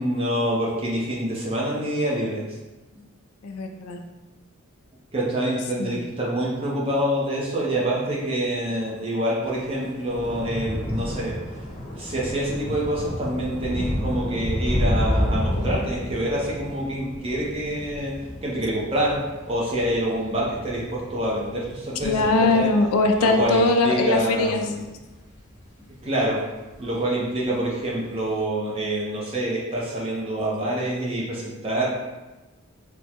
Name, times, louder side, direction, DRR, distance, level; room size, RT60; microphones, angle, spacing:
voice 1, 0.0-2.5 5.1-11.4 12.0-18.1 18.4-19.2 19.5-22.2 22.5-22.7 23.2-24.8 26.0-26.4 26.8-31.9, right 1 dB, 25° right, -5 dB, 0.6 m, -26 dB
voice 2, 3.4-4.0 5.8-6.0 22.0-24.7, left 3 dB, 85° left, 5 dB, 0.4 m, -21 dB
Thunder / Rain, 9.5-26.1 26.5-26.9 27.2-27.4, equal, 30° left, 0.7 m, -30 dB
3.5 x 2.1 x 2.9 m, 1.1 s
head